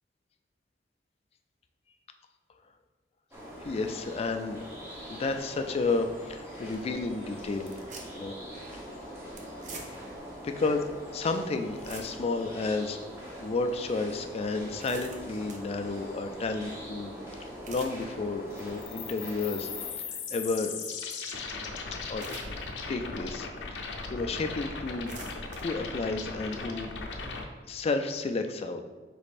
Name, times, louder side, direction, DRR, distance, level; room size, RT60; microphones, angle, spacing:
sound 1, 3.3-19.9, equal, 15° right, 0.9 m, -43 dB
voice 1, 3.6-4.6 5.1-7.7 8.1-8.3 8.7-9.1 10.4-10.8 11.1-17.1 17.7-20.7 22.1-22.4 22.9-25.1 25.5-27.3 27.7-28.8, left 3 dB, 35° left, 6 dB, 0.3 m, -32 dB
sound 2, 6.3-6.4 6.7-6.9 7.5-8.3 8.5-8.7 9.4-10.2 10.8-10.9 11.3-11.4 11.6-12.4 12.9-13.0 13.7-13.8 14.4-15.7 17.4-18.0 18.5-18.8 19.3-19.4 20.9-21.0 21.3-21.4 22.1-22.7 23.2-23.3 24.2-24.3 24.8-25.6, right 3 dB, 45° right, 0.6 m, -46 dB
sound 3, 18.6-27.4, left 4 dB, 80° left, 0.6 m, -38 dB
5.1 x 4.1 x 2.5 m, 1.3 s
head